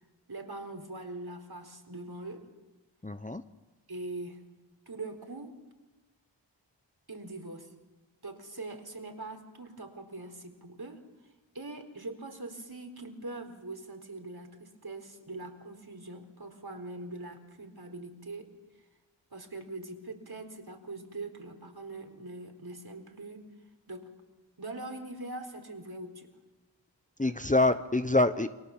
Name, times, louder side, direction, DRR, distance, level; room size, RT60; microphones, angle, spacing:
voice 1, 0.3-2.5 3.9-4.5 4.9-5.6 7.1-7.7 8.2-11.0 11.5-18.5 19.3-23.4 23.9-24.1 24.6-26.3, right 2 dB, 55° right, 5 dB, 4.2 m, -42 dB
voice 2, 3.0-3.4 27.2-28.5, left 2 dB, 15° left, 10 dB, 0.9 m, -25 dB
29.5 x 24.0 x 7.3 m, 1.1 s
wide cardioid pair, 50°, 46 cm